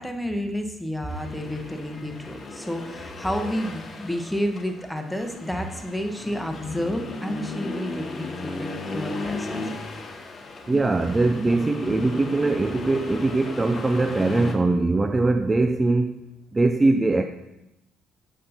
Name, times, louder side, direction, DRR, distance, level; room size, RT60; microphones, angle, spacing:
voice 1, 0.0-9.8 10.7-11.0 11.3-11.5, equal, 5° left, 5 dB, 1.0 m, -30 dB
Accelerating revving vroom, 1.1-14.6, left 3 dB, 40° left, 0.8 m, -36 dB
voice 2, 10.7-16.1 16.5-17.3, right 2 dB, 25° right, 8 dB, 0.4 m, -21 dB
7.6 x 5.4 x 2.7 m, 0.90 s
hypercardioid pair, 50°, 0 cm